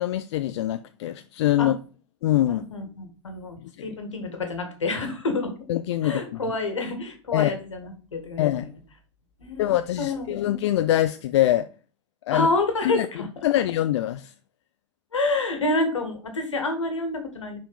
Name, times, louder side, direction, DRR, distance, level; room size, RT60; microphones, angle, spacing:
voice 1, 0.0-1.8 2.2-2.6 3.8-3.9 5.7-6.4 7.3-7.5 8.4-8.7 9.6-11.7 12.3-12.5 12.8-13.1 13.4-14.3, left 13 dB, 65° left, 0.4 m, -24 dB
voice 2, 2.5-5.6 6.0-8.7 9.4-9.7 10.0-10.5 12.3-13.3 15.1-17.6, left 2 dB, 85° left, 1.9 m, -28 dB
5.5 x 5.2 x 5.4 m
hypercardioid pair, 90°, 15 cm